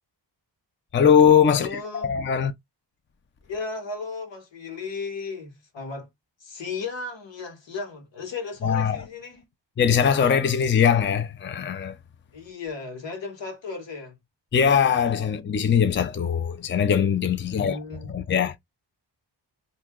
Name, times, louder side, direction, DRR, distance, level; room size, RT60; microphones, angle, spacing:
voice 1, 0.9-2.5 8.6-9.0 9.8-11.9 14.5-17.8 18.1-18.5, left 7 dB, 30° left, 0.4 m, -21 dB
voice 2, 1.5-2.1 3.5-6.1 6.4-9.4 12.3-14.2 17.4-18.1, left 4 dB, 90° left, 1.4 m, -35 dB
2.8 x 2.7 x 3.6 m
wide cardioid pair, 110°, 43 cm